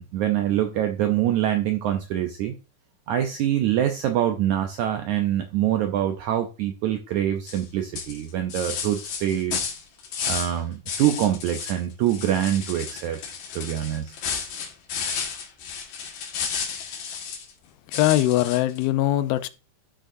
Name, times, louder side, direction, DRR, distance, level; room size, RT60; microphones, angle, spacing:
voice 1, 0.0-2.5 3.1-9.7 10.2-13.2 13.5-14.1, right 11 dB, 80° right, 1.7 m, -25 dB
sound 1, 7.5-7.7 8.0-10.6 10.9-11.8 12.1-17.5 17.9-18.8, left 6 dB, 70° left, 3.2 m, -32 dB
voice 2, 17.9-19.5, left 14 dB, 90° left, 2.5 m, -21 dB
12.5 x 6.2 x 2.6 m
omnidirectional pair, 4.2 m